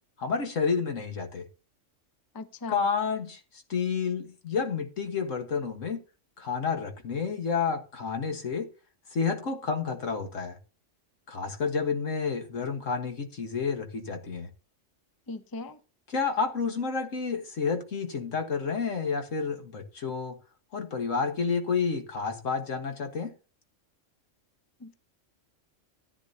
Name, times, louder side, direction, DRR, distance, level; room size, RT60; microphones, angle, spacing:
voice 1, 0.2-1.5 2.7-3.4 3.7-6.0 6.4-8.7 9.1-10.6 11.3-14.5 16.1-20.4 20.7-23.3, left 5 dB, 80° left, 1.8 m, -30 dB
voice 2, 2.3-2.8 15.3-15.8 24.8-24.9, left 3 dB, 20° left, 0.6 m, -39 dB
14.0 x 9.7 x 2.8 m
omnidirectional pair, 1.3 m